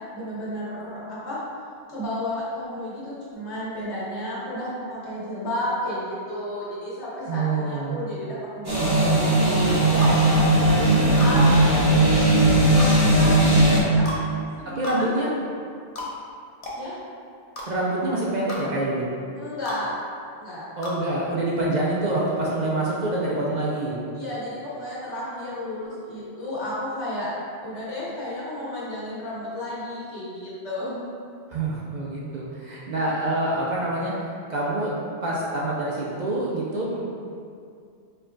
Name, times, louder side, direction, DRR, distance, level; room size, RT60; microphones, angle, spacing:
voice 1, 0.1-1.4 1.9-10.1 10.7-15.1 16.7-16.9 19.3-19.9 20.4-20.6 24.1-27.3 27.6-31.1, left 1 dB, 80° left, -9 dB, 1.5 m, -32 dB
voice 2, 7.3-8.0 14.6-15.3 17.7-19.1 20.8-23.9 31.5-35.0 35.2-37.0, right 2 dB, 50° right, -5 dB, 0.6 m, -26 dB
sound 1, 8.6-13.8, right 1 dB, 25° right, 0.9 m, -18 dB
sound 2, 10.0-10.2 11.2-11.3 12.8-12.9 14.1-14.2 14.8-15.0 16.0-16.1 16.6-16.8 17.6-17.7 18.5-18.6 19.7-19.8 20.8-21.0, left 1 dB, 40° left, 0.6 m, -33 dB
4.5 x 2.3 x 3.7 m, 2.3 s
omnidirectional pair, 1.1 m